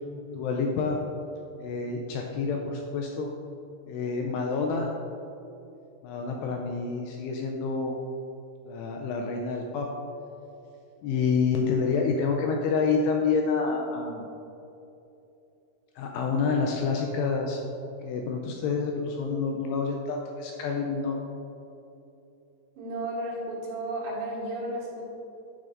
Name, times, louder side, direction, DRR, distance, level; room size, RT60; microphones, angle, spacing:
voice 1, 0.3-1.0 1.6-3.3 3.9-4.9 6.0-8.0 8.7-9.9 11.0-14.2 16.0-17.6 18.0-21.2, left 4 dB, 85° left, 1 dB, 2.5 m, -28 dB
voice 2, 22.8-25.0, right 1 dB, 70° right, -7 dB, 3.7 m, -33 dB
10.5 x 6.4 x 2.5 m, 2.8 s
omnidirectional pair, 5.2 m